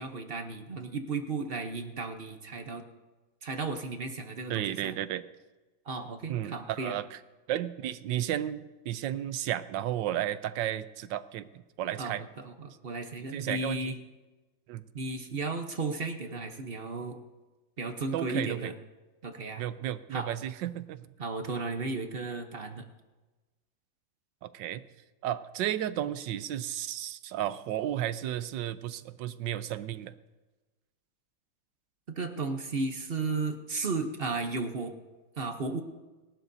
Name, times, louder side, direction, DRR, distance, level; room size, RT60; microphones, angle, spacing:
voice 1, 0.0-2.8 3.4-4.9 5.9-7.0 12.0-13.9 14.9-17.2 17.8-18.7 19.2-19.6 20.1-20.3 21.2-22.9 32.1-34.9 35.4-35.8, right 3 dB, 45° right, 6 dB, 0.8 m, -34 dB
voice 2, 4.5-5.2 6.3-7.2 7.5-11.5 11.8-12.2 13.3-13.8 14.7-14.8 18.1-18.7 19.6-21.0 24.4-24.8 25.2-30.1, right 12 dB, 75° right, 14 dB, 1.3 m, -33 dB
29.5 x 12.0 x 2.7 m, 1.2 s
omnidirectional pair, 2.0 m